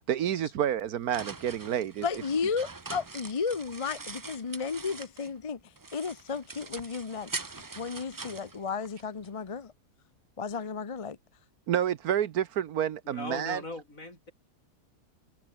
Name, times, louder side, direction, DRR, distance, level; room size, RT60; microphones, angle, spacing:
voice 1, 0.1-2.0 11.7-13.6, right 10 dB, 70° right, 1.3 m, -29 dB
sound 1, 0.7-5.4 5.8-9.3, right 3 dB, 30° right, 0.3 m, -43 dB
voice 2, 2.0-9.7 10.4-11.2, left 5 dB, 35° left, 0.5 m, -33 dB
voice 3, 13.0-14.3, left 2 dB, 55° left, 6.7 m, -39 dB
omnidirectional pair, 1.7 m